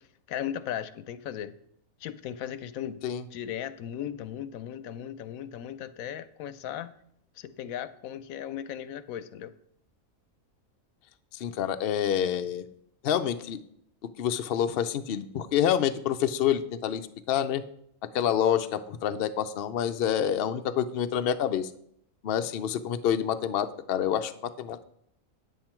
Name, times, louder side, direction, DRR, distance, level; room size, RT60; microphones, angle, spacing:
voice 1, 0.3-1.5 2.0-3.0 3.3-6.9 7.4-9.5, left 10 dB, 80° left, 13 dB, 1.0 m, -37 dB
voice 2, 11.3-12.6 13.0-13.6 14.2-17.0 17.3-17.6 18.1-21.7 22.2-24.3 24.6-24.8, left 9 dB, 60° left, 9 dB, 0.6 m, -27 dB
9.2 x 7.7 x 4.4 m, 0.71 s
omnidirectional pair, 1.5 m